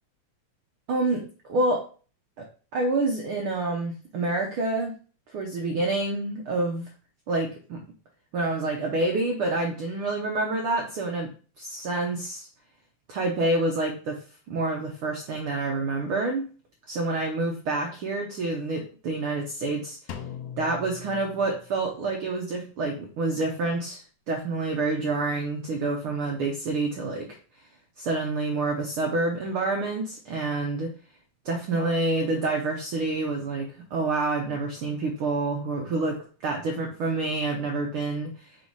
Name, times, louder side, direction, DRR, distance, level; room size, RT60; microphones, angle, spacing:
voice 1, 0.9-1.8 2.4-2.5 2.7-4.9 5.3-6.9 7.3-7.8 8.3-11.3 11.6-12.5 13.1-14.2 14.5-16.5 16.9-20.0 20.6-27.4 28.0-30.9 31.4-38.6, right 2 dB, 75° right, 1 dB, 1.2 m, -28 dB
Drum, 20.1-22.0, left 8 dB, 80° left, 1.4 m, -40 dB
6.9 x 3.2 x 4.7 m, 0.38 s
omnidirectional pair, 3.5 m